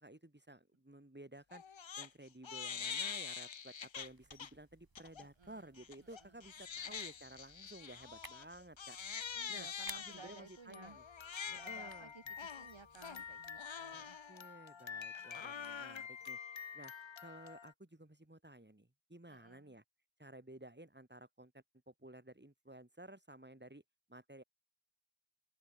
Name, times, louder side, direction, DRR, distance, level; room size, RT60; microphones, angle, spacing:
voice 1, 0.0-1.6 2.0-9.0 9.5-11.0 11.5-12.1 13.9-16.4 16.7-16.9 17.2-19.8 20.2-23.8 24.1-24.4, right 1 dB, 25° right, 6.1 m, -55 dB
Crying sobbing, 1.5-2.1 2.4-4.5 5.0-5.2 5.8-17.7, left 7 dB, 80° left, 0.9 m, -45 dB
sound 1, 3.9-13.6, right 2 dB, 50° right, 5.5 m, -60 dB
voice 2, 5.2-5.7 6.0-6.4 6.8-6.9 9.3-11.0 11.5-14.2 14.7-15.3 19.3-19.8, right 4 dB, 85° right, 2.1 m, -58 dB
wide cardioid pair, 45°, 45 cm